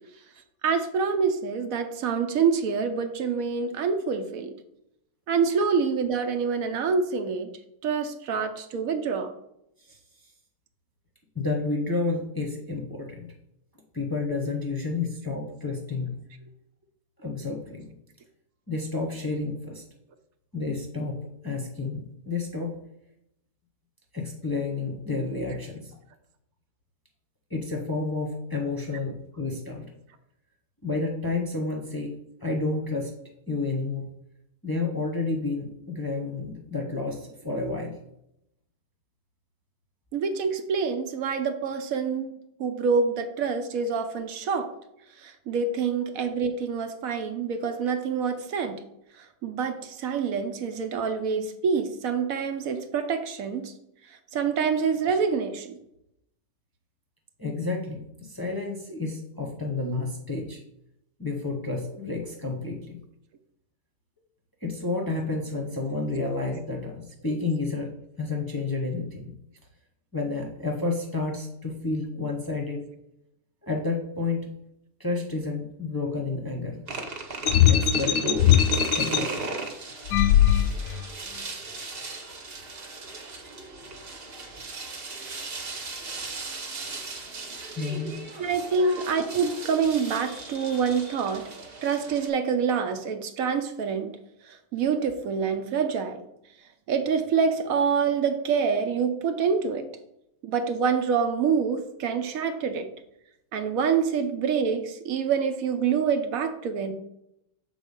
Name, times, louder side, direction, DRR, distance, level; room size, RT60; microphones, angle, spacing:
voice 1, 0.6-4.5 5.3-7.5 7.8-9.3 40.1-44.7 45.2-48.8 49.2-53.7 54.3-55.8 88.4-91.4 91.8-94.1 94.5-96.2 96.9-99.9 100.4-102.9 103.5-106.9, right 6 dB, 70° right, 8 dB, 1.1 m, -26 dB
voice 2, 11.3-13.3 13.9-16.3 17.2-17.9 18.7-19.8 20.5-22.8 24.1-26.0 27.5-29.9 30.8-32.1 32.4-33.1 33.5-34.1 34.6-38.0 57.4-60.6 61.2-63.0 64.6-69.3 70.1-72.9 73.6-74.5 75.0-76.9 77.7-78.7 79.0-79.5 87.8-88.2 88.8-89.0, left 3 dB, 20° left, 0 dB, 0.7 m, -30 dB
sound 1, 76.9-92.3, right 3 dB, 45° right, 1.1 m, -37 dB
sound 2, 77.5-79.2 80.1-81.0, left 10 dB, 75° left, 0.9 m, -20 dB
7.0 x 3.8 x 5.3 m, 0.81 s
omnidirectional pair, 1.6 m